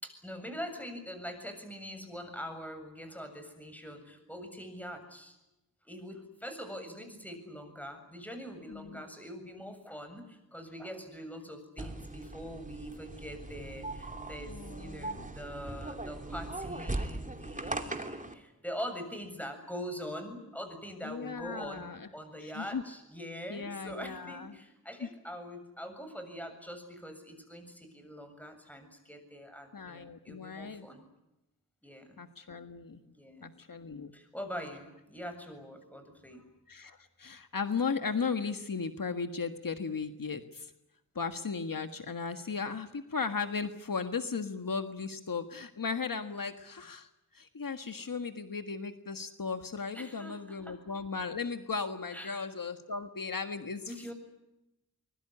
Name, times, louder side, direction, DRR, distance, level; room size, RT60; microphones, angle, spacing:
voice 1, 0.0-5.4 5.9-31.1 31.8-32.2 33.0-33.5 34.1-36.4 49.9-50.8 52.1-52.5 53.8-54.1, equal, 5° left, 7 dB, 7.4 m, -43 dB
voice 2, 8.7-9.0 14.5-15.2 21.0-22.1 22.4-22.8 23.5-24.6 25.0-25.1 29.7-30.9 32.2-33.0 33.4-34.1 36.7-40.7 41.2-47.1 47.3-53.9, left 5 dB, 65° left, 8 dB, 1.7 m, -36 dB
sound 1, 11.8-18.3, right 2 dB, 20° right, 2.8 m, -39 dB
24.5 x 22.0 x 10.0 m, 0.92 s
wide cardioid pair, 75°, 35 cm